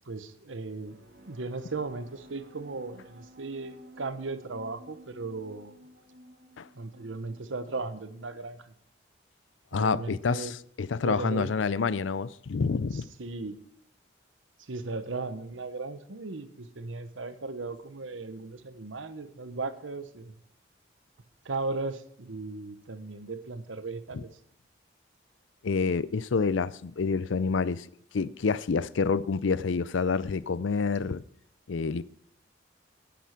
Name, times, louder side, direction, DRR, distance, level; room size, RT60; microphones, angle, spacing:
voice 1, 0.1-1.0 1.3-5.8 6.8-8.7 9.7-10.5 11.0-11.5 13.2-13.6 14.6-20.4 21.4-24.3, right 3 dB, 90° right, 1.0 m, -36 dB
sound 1, 0.8-8.3, equal, 55° right, 1.9 m, -54 dB
voice 2, 9.7-13.1 24.1-24.2 25.6-27.9 28.1-31.2 31.7-32.0, left 5 dB, 85° left, 0.5 m, -28 dB
10.0 x 9.5 x 6.0 m
head